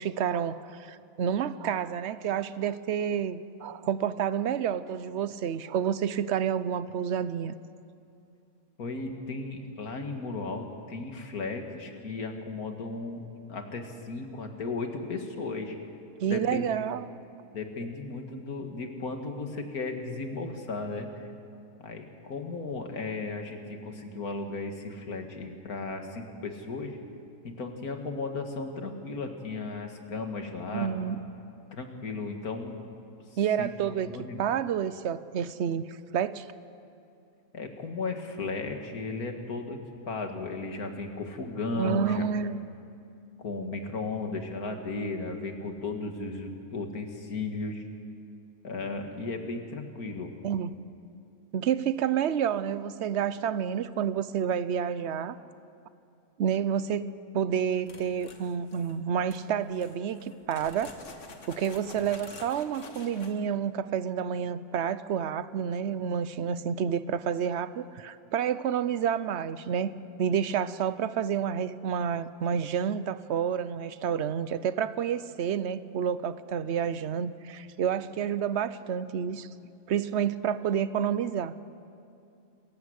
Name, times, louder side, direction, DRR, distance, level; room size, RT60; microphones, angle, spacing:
voice 1, 0.0-7.5 16.2-17.1 30.7-31.2 33.4-34.1 34.4-36.5 41.8-42.6 50.4-50.7 51.5-55.4 56.4-57.1 57.3-60.9 61.5-69.9 70.2-79.5 79.9-81.5, right 8 dB, 60° right, 15 dB, 0.9 m, -29 dB
voice 2, 8.8-15.8 16.2-16.6 17.5-21.3 21.8-27.0 27.4-30.9 31.8-32.8 33.3-33.7 34.1-34.4 37.5-39.8 40.0-42.2 43.4-47.8 48.6-50.3, left 3 dB, 85° left, 4 dB, 2.3 m, -35 dB
sound 1, 57.9-59.0 59.3-59.4 59.8-63.3, left 3 dB, 55° left, 1.9 m, -48 dB
27.5 x 15.0 x 8.0 m, 2.5 s
omnidirectional pair, 1.5 m